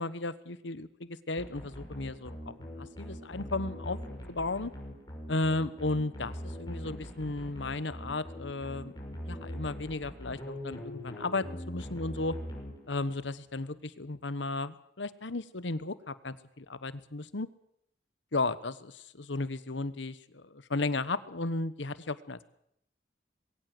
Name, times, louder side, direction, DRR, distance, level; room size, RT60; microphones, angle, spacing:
voice 1, 0.0-4.0 4.3-4.7 5.3-8.9 9.2-12.4 12.9-17.5 18.3-22.5, left 2 dB, 85° left, 15 dB, 1.2 m, -34 dB
sound 1, 1.4-13.2, equal, 20° left, 6.0 m, -42 dB
22.0 x 17.5 x 7.7 m, 0.74 s
head